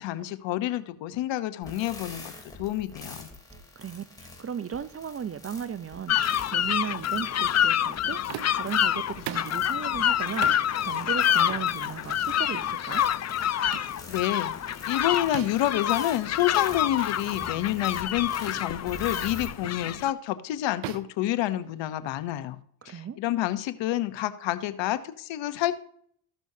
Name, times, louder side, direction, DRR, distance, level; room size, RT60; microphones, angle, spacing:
voice 1, 0.0-2.3 2.6-3.3 14.1-14.5 14.9-22.6 22.9-25.7, left 14 dB, 70° left, 0.9 m, -28 dB
sound 1, 1.6-19.5, left 2 dB, 10° left, 3.2 m, -46 dB
voice 2, 3.8-13.1 22.8-23.2, right 8 dB, 30° right, 0.6 m, -36 dB
sound 2, 6.1-20.1, left 10 dB, 35° left, 0.5 m, -27 dB
sound 3, 8.3-8.7 9.3-9.6 10.4-10.7 11.5-11.7 12.5-12.7 13.7-14.0 15.3-15.7 17.0-17.1 17.6-17.7 18.5-18.7 19.6-19.9 20.8-22.0, right 13 dB, 70° right, 0.8 m, -39 dB
14.5 x 6.2 x 2.7 m
supercardioid pair, 60°, 46 cm